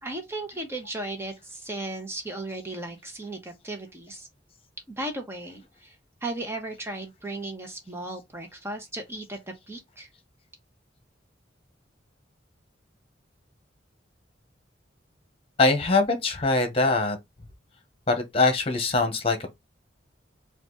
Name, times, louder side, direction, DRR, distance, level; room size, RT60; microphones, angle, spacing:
voice 1, 0.0-4.3 4.9-5.9 6.2-10.1, right 2 dB, 15° right, 1.2 m, -36 dB
voice 2, 15.6-17.2 18.1-19.6, left 3 dB, 30° left, 1.2 m, -23 dB
4.5 x 2.6 x 3.9 m
head